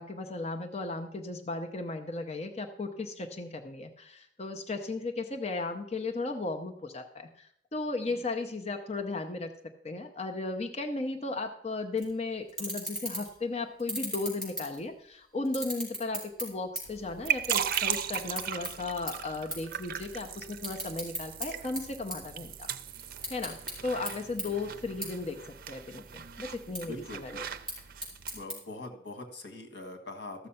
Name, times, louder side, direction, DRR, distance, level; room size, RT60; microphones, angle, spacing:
voice 1, 0.0-9.5 9.8-22.7 23.3-23.6 23.8-27.5, left 3 dB, 40° left, 4 dB, 0.8 m, -35 dB
sound 1, 12.0-12.1 12.5-13.4 13.8-15.1 15.4-17.0 17.3-18.7 19.1-19.2 19.5-19.7 20.1-21.5 21.8-22.7 23.1-23.7 24.1-24.2 24.4-24.5 25.0-25.1 25.5-26.0 26.5-26.8 27.5-28.6, right 1 dB, 5° left, 4.9 m, -36 dB
sound 2, 16.9-28.4, right 9 dB, 55° right, 0.5 m, -37 dB
voice 2, 26.8-27.6 28.3-30.5, left 2 dB, 90° left, 6 dB, 1.7 m, -43 dB
14.0 x 6.5 x 5.7 m, 0.69 s
head